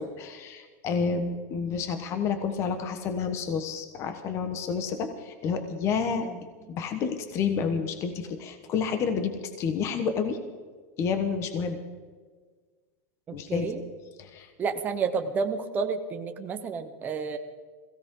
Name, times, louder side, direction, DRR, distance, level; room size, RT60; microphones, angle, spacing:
voice 1, 0.0-6.3 6.7-10.4 11.0-11.8 13.3-13.7 14.2-14.5, left 6 dB, 35° left, 7 dB, 1.3 m, -29 dB
voice 2, 13.3-13.8 14.6-17.4, right 5 dB, 20° right, 5 dB, 1.0 m, -30 dB
21.5 x 16.5 x 3.9 m, 1.5 s
supercardioid pair, 155°, 9 cm